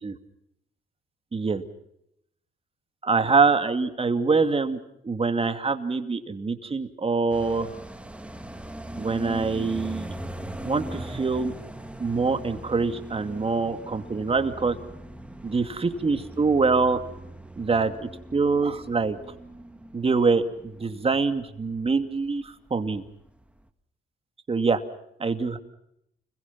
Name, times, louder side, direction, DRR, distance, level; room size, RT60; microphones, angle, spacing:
voice 1, 1.3-1.6 3.0-4.8 5.0-7.7 8.9-10.1 10.6-11.5 12.0-14.8 15.4-17.0 17.6-19.2 19.9-23.0 24.5-24.8 25.2-25.6, right 4 dB, 30° right, 8 dB, 2.5 m, -24 dB
sound 1, 7.3-22.4 22.7-22.8 23.1-23.7, right 1 dB, 5° right, 2.0 m, -40 dB
30.0 x 22.5 x 6.0 m, 0.77 s
cardioid pair, 90°, 20 cm